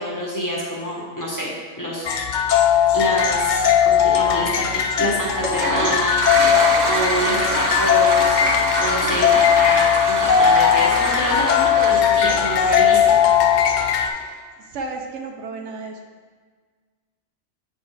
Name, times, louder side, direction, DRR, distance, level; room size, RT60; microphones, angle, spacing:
voice 1, 0.0-2.1 2.9-6.2 6.5-8.4 8.8-13.2, equal, 15° left, -6 dB, 1.3 m, -26 dB
sound 1, 2.0-14.1, left 8 dB, 60° left, 0.5 m, -18 dB
Toilet flush, 5.4-14.2, right 2 dB, 45° right, 0.7 m, -26 dB
voice 2, 14.7-16.0, right 3 dB, 80° right, 2 dB, 1.0 m, -33 dB
8.0 x 4.4 x 3.4 m, 1.5 s
omnidirectional pair, 1.2 m